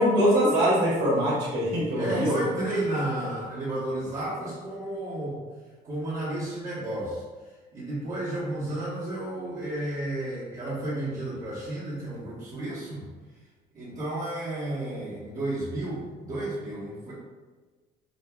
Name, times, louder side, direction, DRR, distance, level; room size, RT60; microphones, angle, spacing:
voice 1, 0.0-2.3, equal, 80° right, -6 dB, 1.5 m, -23 dB
voice 2, 1.9-5.4 5.8-7.2 7.7-13.1 13.7-17.1, right 1 dB, 50° right, -10 dB, 1.2 m, -32 dB
5.3 x 2.3 x 2.3 m, 1.3 s
cardioid pair, 110°, 17 cm